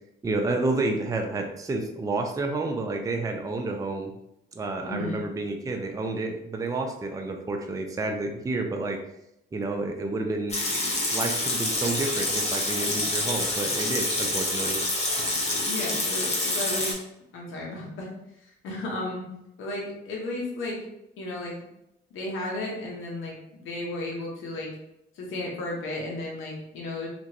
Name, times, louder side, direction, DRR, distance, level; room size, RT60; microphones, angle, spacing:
voice 1, 0.2-4.1 4.5-9.0 9.5-10.6 11.1-14.8, right 2 dB, 15° right, 3 dB, 0.4 m, -30 dB
voice 2, 4.8-5.2 15.7-17.0 17.3-18.1 18.6-19.2 19.6-20.8 21.2-21.5 22.1-24.7 25.1-27.1, left 2 dB, 85° left, -2 dB, 1.0 m, -33 dB
Water tap faucet / Sink (filling or washing) / Liquid, 10.5-16.9, left 1 dB, 35° left, 1.0 m, -27 dB
2.9 x 2.5 x 2.8 m, 0.83 s
cardioid pair, 90°, 20 cm